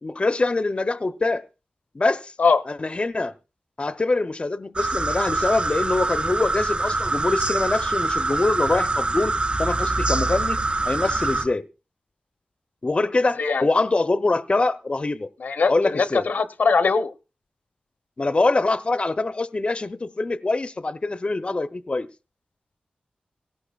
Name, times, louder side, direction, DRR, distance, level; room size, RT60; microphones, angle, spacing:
voice 1, 0.0-1.5 1.9-2.3 2.7-3.3 3.8-10.6 10.9-11.7 12.8-15.3 15.7-16.3 18.2-22.1, left 3 dB, 40° left, 0.6 m, -24 dB
sound 1, 4.8-11.5, right 2 dB, 45° right, 3.5 m, -24 dB
voice 2, 15.4-17.1, left 4 dB, 85° left, 0.8 m, -21 dB
18.0 x 17.0 x 2.3 m
cardioid pair, 50°, 3 cm